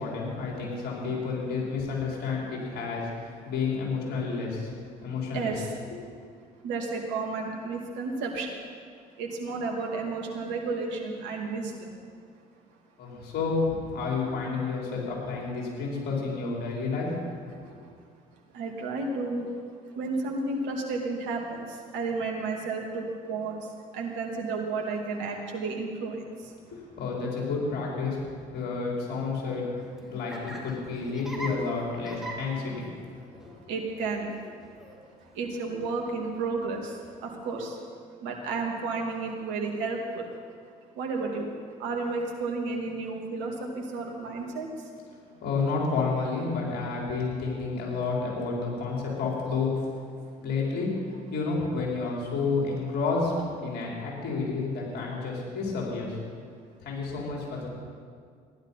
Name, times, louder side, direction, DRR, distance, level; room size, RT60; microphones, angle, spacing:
voice 1, 0.0-4.7 5.0-5.5 13.0-17.2 17.7-17.8 26.7-29.7 30.1-32.9 45.4-49.8 50.4-50.9 51.3-56.2 56.8-57.7, left 4 dB, 60° left, -3 dB, 4.8 m, -30 dB
voice 2, 5.3-5.7 6.6-8.6 9.2-12.0 17.6-17.9 18.5-26.6 33.3-33.4 33.7-34.3 34.7-37.8 38.2-40.4 40.9-41.5 41.8-44.9, right 3 dB, 75° right, 1 dB, 2.4 m, -32 dB
Laughter, 29.8-37.2, right 1 dB, ahead, 3.0 m, -44 dB
15.5 x 11.0 x 5.8 m, 2.1 s
hypercardioid pair, 55°, 19 cm